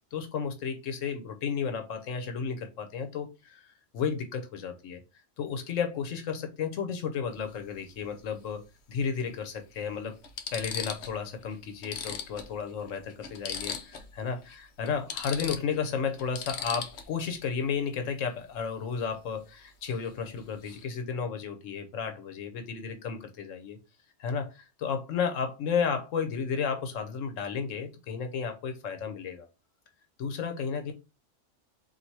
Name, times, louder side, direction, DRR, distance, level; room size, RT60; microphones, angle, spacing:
voice 1, 0.1-5.0 5.4-10.2 10.5-23.8 24.2-29.5 30.2-30.9, left 6 dB, 90° left, 7 dB, 1.1 m, -33 dB
sound 1, 7.3-7.5 9.0-9.1 9.7-9.8 10.2-11.2 11.5-11.6 11.8-14.1 14.4-14.6 14.9-17.3 19.9-20.1 20.4-20.8, left 7 dB, 65° left, 1.0 m, -38 dB
4.1 x 2.7 x 4.5 m, 0.27 s
omnidirectional pair, 1.3 m